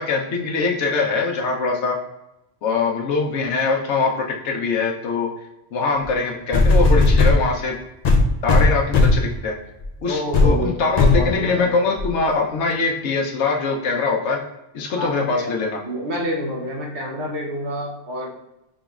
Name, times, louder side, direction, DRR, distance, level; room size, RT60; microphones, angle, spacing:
voice 1, 0.0-2.0 2.6-5.3 5.7-7.7 8.4-9.5 10.0-14.4 14.7-15.8, left 4 dB, 85° left, 1 dB, 1.0 m, -22 dB
sound 1, 6.0-6.1 6.5-7.4 8.0-9.3 9.8-10.0 10.3-10.6 11.0-11.3 12.0-12.1, left 2 dB, 55° left, 0.5 m, -15 dB
voice 2, 10.1-11.8 15.0-15.5 15.9-18.3, equal, 75° right, -1 dB, 1.1 m, -28 dB
5.1 x 3.0 x 2.3 m, 0.90 s
omnidirectional pair, 1.2 m